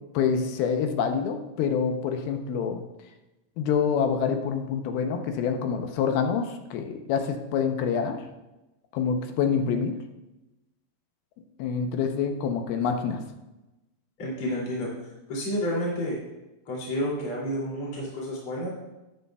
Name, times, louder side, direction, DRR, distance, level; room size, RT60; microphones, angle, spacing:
voice 1, 0.1-2.8 3.6-8.2 8.9-10.0 11.6-13.2, left 6 dB, 80° left, 5 dB, 2.6 m, -26 dB
voice 2, 14.2-16.2 16.6-18.7, equal, 35° left, -5 dB, 3.2 m, -30 dB
13.5 x 9.6 x 2.3 m, 0.99 s
omnidirectional pair, 4.4 m